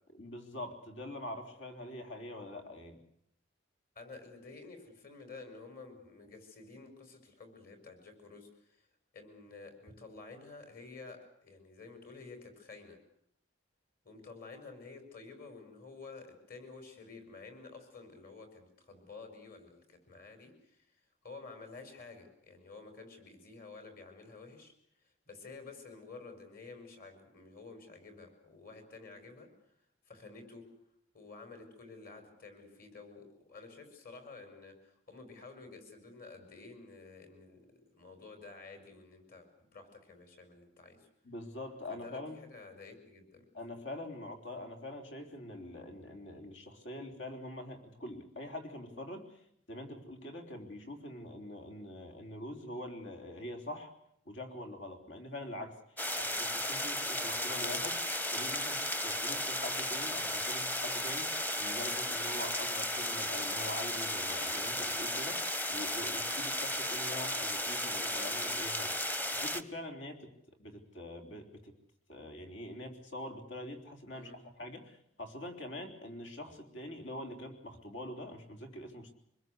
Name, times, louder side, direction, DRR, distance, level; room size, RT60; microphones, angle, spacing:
voice 1, 0.1-3.0 41.2-42.4 43.5-53.9 54.3-58.0 58.3-70.3 70.6-71.7 72.1-79.1, left 1 dB, 70° left, 4 dB, 3.8 m, -44 dB
voice 2, 4.0-8.8 9.1-13.0 14.0-20.9 21.2-24.7 25.0-29.5 30.1-30.7 31.1-41.1 41.9-43.4 56.0-56.2 74.1-74.4, left 3 dB, 50° left, 7 dB, 5.6 m, -51 dB
sound 1, 56.0-69.6, left 1 dB, 10° left, 1.0 m, -34 dB
25.5 x 21.0 x 8.2 m, 0.74 s
head